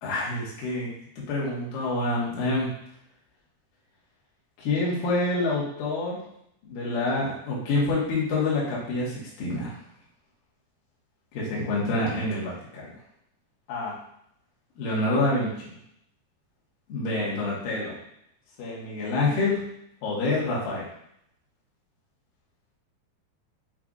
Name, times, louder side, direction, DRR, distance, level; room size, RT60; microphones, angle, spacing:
voice 1, 0.0-2.7 4.6-6.2 6.6-9.7 11.3-12.9 13.7-14.0 14.8-15.7 16.9-18.0 18.6-19.6 20.0-20.9, left 2 dB, 65° left, -6 dB, 2.5 m, -27 dB
7.1 x 2.5 x 2.5 m, 0.73 s
omnidirectional pair, 4.9 m